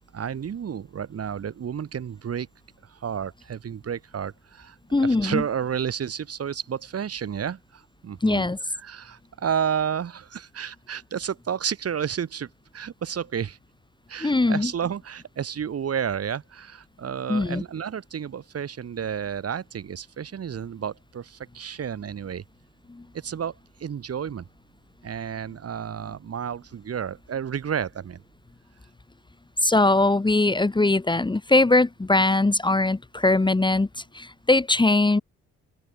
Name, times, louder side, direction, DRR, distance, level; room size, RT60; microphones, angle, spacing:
voice 1, 0.1-2.5 2.9-4.8 5.0-13.6 14.1-22.4 23.1-24.5 25.0-28.2, right 8 dB, 50° right, 4.8 m, -31 dB
voice 2, 4.9-5.4 8.2-8.6 14.2-14.7 17.3-17.6 22.9-23.0 29.6-33.9 34.1-35.2, left 2 dB, 15° left, 1.7 m, -21 dB
open air
cardioid pair, 90°, 30 cm